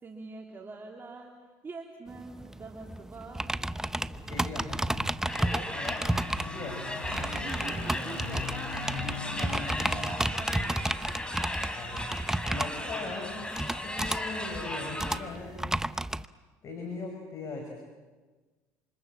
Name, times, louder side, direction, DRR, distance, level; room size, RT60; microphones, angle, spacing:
voice 1, 0.0-1.3 1.6-3.5 3.9-4.4 4.7-5.2 7.2-11.0, right 3 dB, 30° right, 0 dB, 3.3 m, -45 dB
sound 1, 2.1-16.3, right 1 dB, 5° right, 0.8 m, -33 dB
sound 2, 3.7-12.1, left 5 dB, 90° left, 4.0 m, -43 dB
voice 2, 4.3-4.8 5.2-6.8 9.4-9.7 11.8-12.1 12.4-13.5 13.8-15.7 16.6-17.7, left 3 dB, 45° left, 3 dB, 6.0 m, -40 dB
sound 3, 5.3-15.2, left 1 dB, 10° left, 4.9 m, -37 dB
28.5 x 27.0 x 7.4 m, 1.3 s
supercardioid pair, 85°, 8 cm